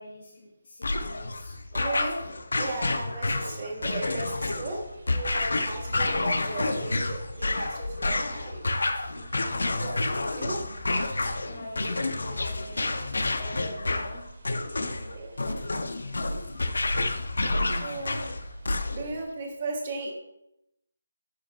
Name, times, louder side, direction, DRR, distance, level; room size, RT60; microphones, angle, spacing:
voice 1, 0.0-1.6 9.1-9.8 11.4-12.9 13.4-14.4, left 1 dB, 55° left, -5 dB, 2.1 m, -44 dB
sound 1, 0.8-19.2, left 2 dB, 75° left, 0.8 m, -29 dB
voice 2, 1.7-8.6 9.8-10.6 15.1-15.3 17.6-18.3 18.9-20.1, right 2 dB, 25° right, 0 dB, 1.4 m, -36 dB
sound 2, 4.0-19.2, right 2 dB, 60° right, 2.6 m, -47 dB
11.0 x 6.2 x 2.6 m, 0.84 s
hypercardioid pair, 180°, 0 cm